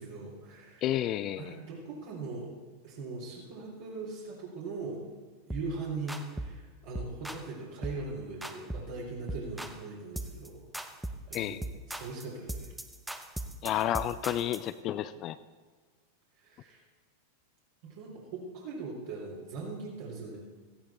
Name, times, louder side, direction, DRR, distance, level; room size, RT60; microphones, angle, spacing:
voice 1, 0.0-0.9 1.4-2.5 2.8-5.1 5.5-10.7 11.3-11.6 11.9-12.7 16.4-16.8 17.8-20.4, right 3 dB, 50° right, -4 dB, 3.6 m, -40 dB
voice 2, 0.8-1.6 11.3-11.6 13.6-15.4, left 12 dB, 35° left, 14 dB, 0.5 m, -31 dB
sound 1, 5.5-5.7 6.1-6.6 6.9-7.5 7.8-8.1 8.4-9.0 9.3-9.8 10.2-10.5 10.7-14.7, right 1 dB, 5° right, 0.9 m, -39 dB
17.5 x 15.0 x 4.3 m, 1.5 s
figure-of-eight pair, 90°, 0 cm